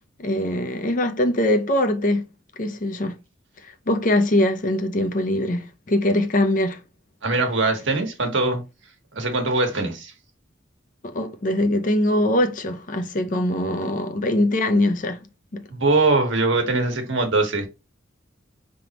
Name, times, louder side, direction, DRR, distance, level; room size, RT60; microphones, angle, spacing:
voice 1, 0.2-2.3 2.6-3.2 3.6-6.8 11.0-15.2 15.5-15.7, left 1 dB, 45° left, 0.6 m, -22 dB
voice 2, 7.2-8.6 9.1-10.1 15.7-17.7, right 3 dB, 75° right, 1.3 m, -22 dB
5.2 x 3.5 x 2.9 m
head